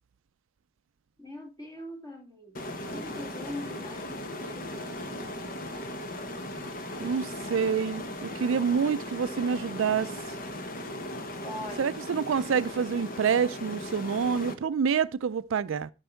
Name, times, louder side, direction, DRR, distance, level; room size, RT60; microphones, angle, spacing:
voice 1, 1.2-5.3 5.6-6.1 11.4-12.1, left 1 dB, 15° left, 2.1 m, -43 dB
sound 1, 2.5-14.5, left 1 dB, 45° left, 1.1 m, -38 dB
voice 2, 7.0-10.1 11.8-15.9, right 6 dB, 70° right, 0.4 m, -27 dB
12.5 x 5.3 x 4.4 m
head